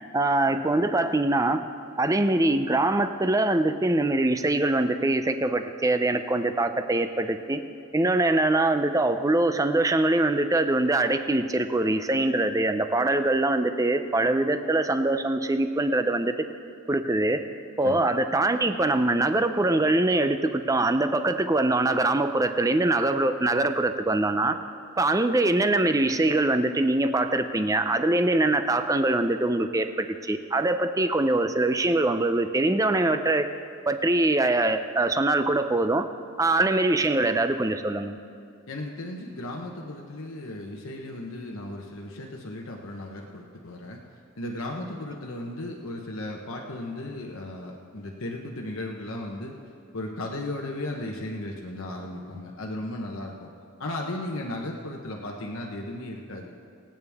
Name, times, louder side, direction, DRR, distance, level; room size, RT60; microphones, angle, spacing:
voice 1, 0.1-1.6 2.0-7.6 7.9-16.3 16.9-17.4 17.8-24.6 25.0-33.5 33.9-36.1 36.4-38.2, right 2 dB, 15° right, 9 dB, 0.5 m, -23 dB
voice 2, 38.7-44.0 44.4-49.5 49.9-53.5 53.8-56.5, left 1 dB, 65° left, 0 dB, 1.0 m, -35 dB
25.0 x 8.9 x 3.6 m, 2.4 s
head